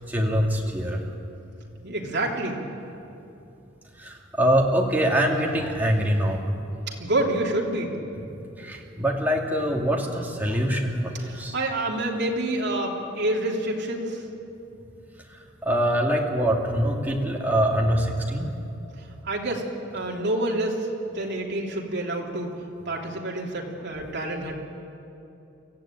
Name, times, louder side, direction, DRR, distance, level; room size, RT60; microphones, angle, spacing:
voice 1, 0.1-1.0 4.0-6.6 8.1-11.6 15.6-18.6, equal, 10° right, -1 dB, 2.4 m, -24 dB
voice 2, 1.8-2.6 7.0-7.9 11.1-14.2 19.2-19.7 19.9-20.8 21.1-22.5 22.8-24.5, right 1 dB, 55° right, -1 dB, 3.2 m, -27 dB
24.5 x 15.5 x 9.0 m, 2.8 s
head